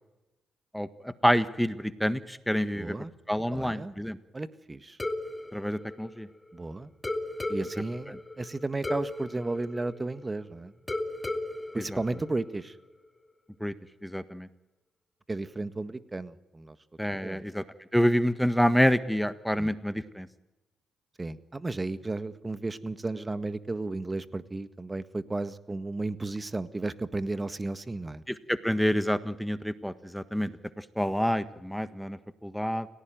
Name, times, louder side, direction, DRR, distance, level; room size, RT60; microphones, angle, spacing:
voice 1, 0.7-2.9 3.3-4.2 5.5-6.3 8.1-8.2 11.7-12.0 13.6-13.7 14.0-14.5 17.0-17.6 17.9-20.3 28.3-30.5 30.8-32.9, equal, 5° left, 11 dB, 1.5 m, -28 dB
voice 2, 2.7-3.1 3.5-3.9 4.3-5.0 6.5-6.9 7.5-10.7 11.7-12.8 15.3-16.8 17.2-17.4 19.6-19.7 21.2-28.2, right 2 dB, 25° right, 11 dB, 1.7 m, -34 dB
sound 1, 5.0-6.6 7.0-10.4 10.9-12.8, left 2 dB, 20° left, 3.2 m, -36 dB
30.0 x 17.0 x 9.3 m, 1.0 s
hypercardioid pair, 45°, 0 cm